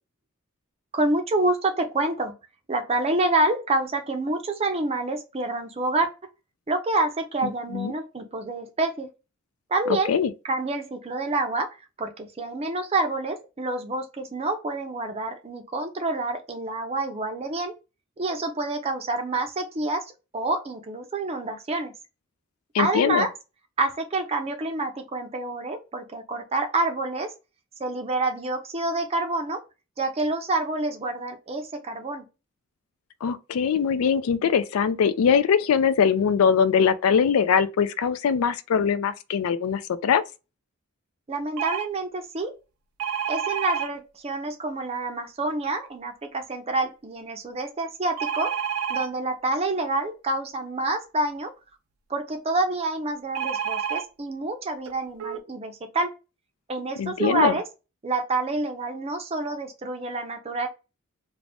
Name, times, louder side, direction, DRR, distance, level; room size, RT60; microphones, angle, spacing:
voice 1, 0.9-2.3 2.7-6.1 6.7-9.1 9.7-10.1 10.4-11.7 12.0-17.7 18.2-21.9 22.8-23.3 23.8-27.3 27.8-29.6 30.0-32.2 41.3-42.5 43.3-48.5 48.9-51.5 52.1-56.1 56.7-57.6 58.0-60.7, right 2 dB, 30° right, 0.5 m, -27 dB
voice 2, 22.7-23.3 33.2-40.2 57.0-57.6, left 7 dB, 75° left, 0.4 m, -22 dB
sound 1, 41.6-41.9 43.0-43.9 48.2-49.1 53.3-54.0 54.9-55.0 55.2-55.4, right 8 dB, 85° right, 0.4 m, -28 dB
2.6 x 2.0 x 3.3 m
head